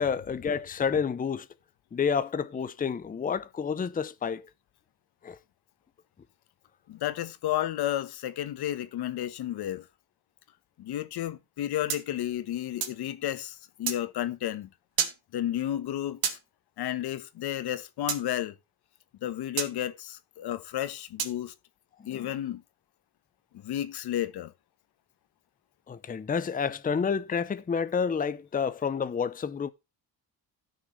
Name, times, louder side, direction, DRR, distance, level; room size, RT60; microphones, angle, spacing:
voice 1, 0.0-1.5 1.9-4.5 5.2-5.4 22.1-22.3 25.9-29.7, left 6 dB, 20° left, 0.7 m, -29 dB
voice 2, 6.9-9.9 10.8-14.7 15.3-16.4 16.8-18.5 19.2-21.5 22.1-22.6 23.6-24.5, left 12 dB, 80° left, 1.3 m, -32 dB
sound 1, 11.9-13.0 13.9-14.0 15.0-15.2 16.2-16.4 18.1-18.2 19.6-19.7 21.2-21.4, right 7 dB, 65° right, 2.9 m, -30 dB
16.0 x 6.6 x 3.2 m
cardioid pair, 130°, 38 cm